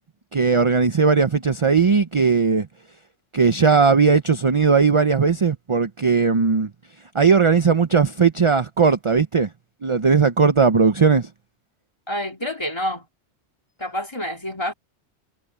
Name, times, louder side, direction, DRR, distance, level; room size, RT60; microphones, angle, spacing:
voice 1, 0.3-2.7 3.3-6.7 7.1-9.5 9.8-11.3, right 5 dB, 35° right, 0.6 m, -18 dB
voice 2, 12.1-13.1 13.8-14.7, equal, 20° left, 2.9 m, -28 dB
omnidirectional pair, 1.3 m